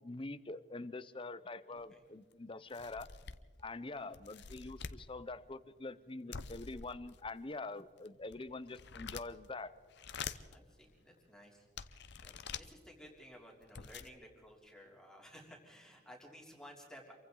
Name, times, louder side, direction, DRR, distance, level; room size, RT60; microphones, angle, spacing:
voice 1, 0.0-3.1 3.6-9.7, left 3 dB, 25° left, 14 dB, 0.7 m, -45 dB
voice 2, 1.7-2.1 3.8-4.2 10.5-11.7 11.9-17.1, equal, 5° left, -1 dB, 3.2 m, -56 dB
sound 1, 1.8-1.9 2.3-2.4 2.7-3.6 4.1-5.0 6.3-7.4 8.0-9.5 9.9-10.6 11.2-11.3 11.8-12.7 13.3-13.4 13.6-14.1, left 6 dB, 55° left, 0.8 m, -46 dB
28.0 x 23.5 x 3.9 m, 1.4 s
head